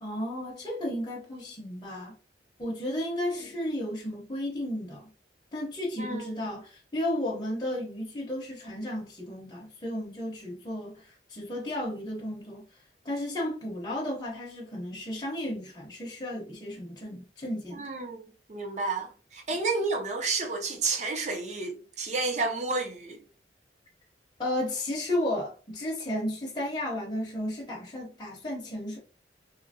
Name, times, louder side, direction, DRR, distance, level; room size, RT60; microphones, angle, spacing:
voice 1, 0.0-2.1 2.6-5.1 5.5-12.7 13.0-17.9 19.5-19.6 24.4-29.0, left 1 dB, 25° left, 0.7 m, -33 dB
voice 2, 5.9-6.5 17.8-23.2, right 3 dB, 40° right, 0.6 m, -31 dB
2.7 x 2.5 x 2.6 m
head